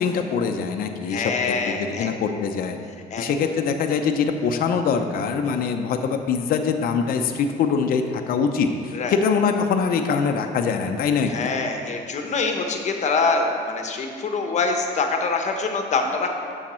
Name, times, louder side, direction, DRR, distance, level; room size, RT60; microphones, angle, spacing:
voice 1, 0.0-2.8 3.2-11.5, left 6 dB, 60° left, 5 dB, 0.6 m, -23 dB
voice 2, 1.1-2.1 3.1-3.2 8.9-9.1 11.3-16.3, left 4 dB, 45° left, 4 dB, 1.0 m, -24 dB
8.6 x 6.5 x 4.3 m, 2.3 s
cardioid pair, 110°, 17 cm